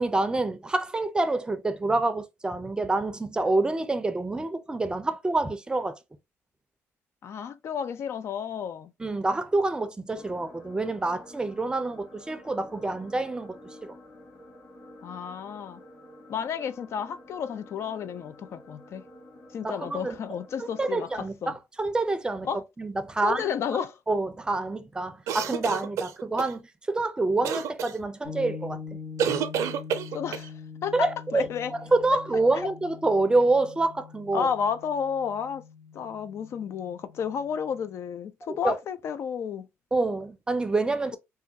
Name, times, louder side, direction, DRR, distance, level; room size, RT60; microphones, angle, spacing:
voice 1, 0.0-6.0 9.0-13.9 19.6-20.2 20.8-22.5 22.8-23.5 24.1-28.8 30.9-31.5 31.9-34.5 38.5-38.8 39.9-41.2, right 2 dB, 15° right, 0.5 m, -27 dB
voice 2, 7.2-8.9 15.0-15.8 16.3-19.0 19.5-21.5 22.4-22.6 23.2-24.0 30.1-30.5 30.8-31.7 32.6-32.7 34.3-35.6 35.9-39.7, left 7 dB, 55° left, 0.3 m, -32 dB
sound 1, 10.1-21.2, left 1 dB, 40° left, 1.7 m, -50 dB
sound 2, 25.3-26.5 27.4-27.9 29.2-30.5, right 8 dB, 80° right, 0.5 m, -28 dB
sound 3, 28.2-37.9, left 5 dB, 80° left, 0.9 m, -43 dB
3.4 x 2.2 x 2.7 m
cardioid pair, 100°, 5 cm